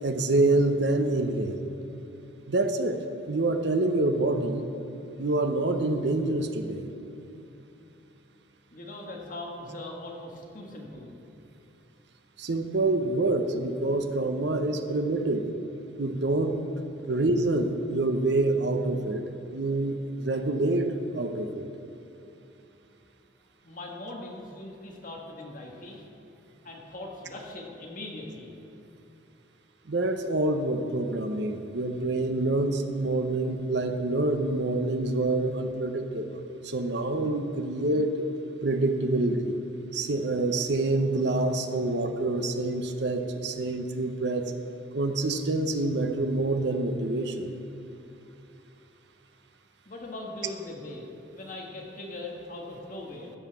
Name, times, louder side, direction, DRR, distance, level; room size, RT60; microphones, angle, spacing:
voice 1, 0.0-1.6 2.5-3.0 3.3-4.6 5.2-6.8 12.4-15.5 16.0-16.6 17.0-21.7 29.9-38.2 38.6-39.6 39.9-44.5 44.9-47.5, right 2 dB, 60° right, 7 dB, 0.8 m, -27 dB
voice 2, 8.7-11.1 23.6-26.1 26.6-28.5 49.8-53.3, left 2 dB, 45° left, 0 dB, 1.6 m, -40 dB
14.5 x 5.7 x 7.0 m, 2.9 s
head